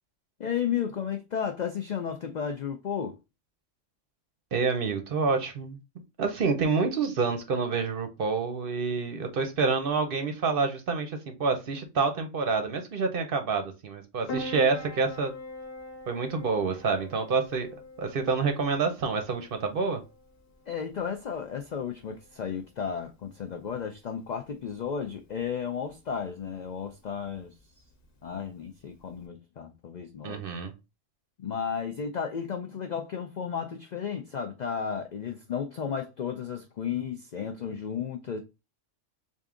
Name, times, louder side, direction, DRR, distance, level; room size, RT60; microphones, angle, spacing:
voice 1, 0.4-3.2 20.7-27.5 28.2-30.4 31.4-38.4, left 7 dB, 75° left, 0.4 m, -33 dB
voice 2, 4.5-5.8 6.2-15.3 16.1-17.7 18.0-20.0 30.2-30.7, right 4 dB, 55° right, 0.8 m, -28 dB
Piano, 14.3-29.3, left 1 dB, 50° left, 1.0 m, -46 dB
3.5 x 2.6 x 3.6 m
omnidirectional pair, 1.3 m